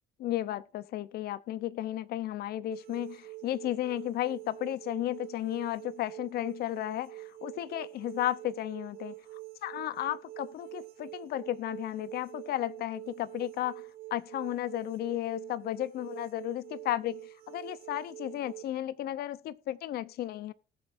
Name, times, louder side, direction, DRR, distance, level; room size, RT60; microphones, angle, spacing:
voice 1, 0.2-9.1 9.6-17.2 17.5-20.5, left 13 dB, 70° left, 0.7 m, -34 dB
sound 1, 2.7-18.6, right 19 dB, 65° right, 0.6 m, -46 dB
19.0 x 7.1 x 2.6 m
cardioid pair, 110°, 17 cm